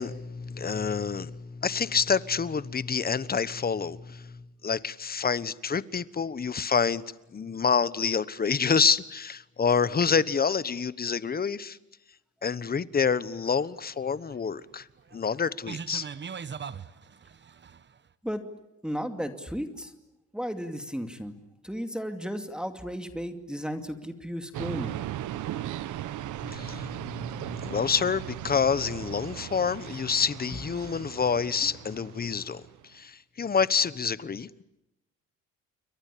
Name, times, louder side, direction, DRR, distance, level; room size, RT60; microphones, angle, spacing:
voice 1, 0.0-7.0 7.3-11.8 12.4-14.8 15.1-16.1 26.4-32.6 32.9-34.6, left 6 dB, 30° left, 17 dB, 1.1 m, -27 dB
sound 1, 13.0-18.0, right 6 dB, 35° right, 1.2 m, -41 dB
voice 2, 18.8-19.9 20.3-21.4 21.6-25.0 30.5-30.6, equal, 5° right, 7 dB, 2.5 m, -34 dB
sound 2, 24.5-32.8, right 12 dB, 80° right, 1.2 m, -38 dB
29.5 x 23.0 x 8.6 m, 0.91 s
cardioid pair, 90°, 30 cm